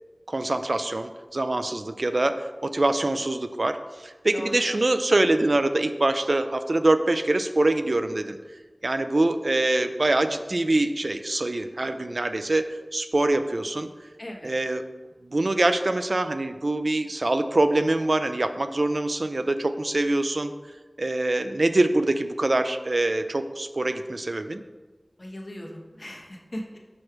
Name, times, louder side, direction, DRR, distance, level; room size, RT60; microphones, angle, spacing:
voice 1, 0.3-8.4 8.8-12.7 12.9-13.9 14.4-14.8 15.2-20.5 21.0-24.6, right 2 dB, 65° right, 9 dB, 0.3 m, -24 dB
voice 2, 4.3-4.7 14.2-14.5 25.2-26.8, left 1 dB, 55° left, 0 dB, 1.0 m, -38 dB
6.1 x 3.2 x 5.8 m, 1.2 s
wide cardioid pair, 45°, 0 cm